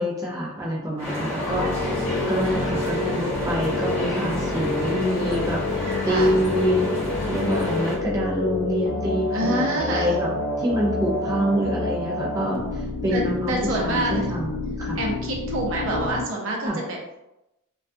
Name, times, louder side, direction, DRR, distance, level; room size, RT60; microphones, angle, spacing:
voice 1, 0.0-6.9 7.2-10.3 10.6-15.0 16.6-16.8, equal, 15° right, -5 dB, 0.4 m, -26 dB
sound 1, 1.0-8.0, equal, 15° left, 0.8 m, -29 dB
sound 2, 1.5-16.3, left 2 dB, 80° left, 0.4 m, -29 dB
voice 2, 2.4-2.7 6.0-6.3 9.3-10.1 13.1-14.3 15.0-17.2, right 1 dB, 65° right, -2 dB, 0.6 m, -27 dB
2.3 x 2.3 x 2.5 m, 0.92 s
head